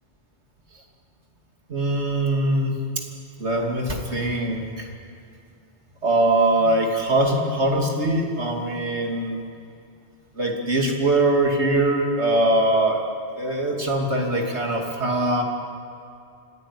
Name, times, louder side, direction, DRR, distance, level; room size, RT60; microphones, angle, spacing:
voice 1, 1.7-3.1 3.4-4.9 6.0-9.4 10.4-13.0 13.4-15.4, right 1 dB, 80° right, 2 dB, 3.1 m, -22 dB
25.5 x 16.0 x 9.8 m, 2.5 s
omnidirectional pair, 1.1 m